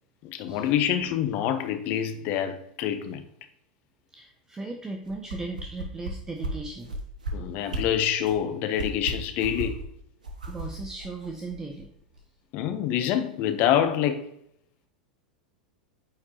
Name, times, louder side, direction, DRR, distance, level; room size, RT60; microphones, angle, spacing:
voice 1, 0.2-3.2 7.3-9.8 12.5-14.2, left 10 dB, 45° left, 0.7 m, -26 dB
voice 2, 4.1-6.9 10.5-11.9, right 3 dB, 15° right, 0.7 m, -37 dB
sound 1, 5.0-6.1 6.4-6.5 6.8-7.3 7.7-7.8 8.2-8.4 8.7-9.8 10.2-11.8 12.2-12.3, right 2 dB, 75° right, 1.0 m, -34 dB
8.7 x 4.4 x 2.8 m
figure-of-eight pair, 85°, 4 cm